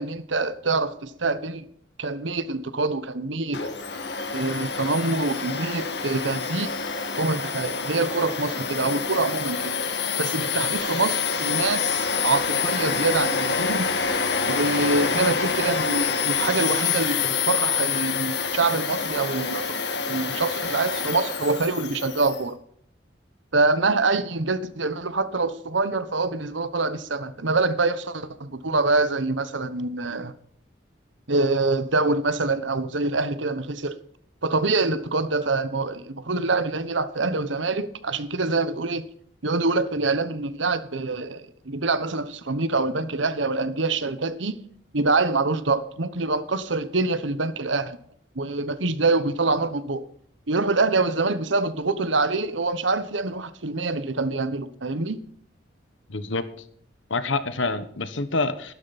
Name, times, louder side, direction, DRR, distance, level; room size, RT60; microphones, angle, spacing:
voice 1, 0.0-1.6 2.0-3.6 4.3-6.7 7.2-9.8 10.2-13.9 14.5-22.6 23.5-30.3 31.3-34.0 34.4-39.1 39.4-44.6 44.9-48.0 48.3-50.0 50.5-55.2, right 3 dB, 80° right, 1.2 m, -25 dB
Domestic sounds home sounds, 3.5-22.4, left 5 dB, 60° left, 2.2 m, -27 dB
voice 2, 56.1-56.4 57.1-58.7, left 3 dB, 85° left, 1.4 m, -27 dB
13.5 x 12.5 x 4.2 m
head